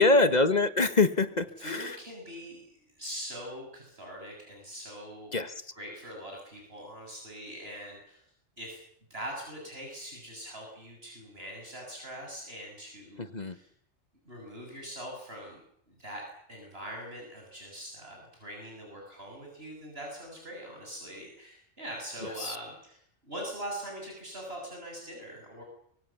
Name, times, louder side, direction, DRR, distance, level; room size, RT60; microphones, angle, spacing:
voice 1, 0.0-1.9 5.3-5.5 13.3-13.6 22.4-22.5, left 3 dB, 40° left, 11 dB, 1.4 m, -24 dB
voice 2, 1.6-2.6 3.0-8.2 8.6-8.8 9.1-13.7 14.3-15.6 15.9-16.2 16.5-25.6, equal, 60° right, 0 dB, 7.3 m, -42 dB
24.5 x 23.5 x 7.1 m, 0.68 s
omnidirectional pair, 1.2 m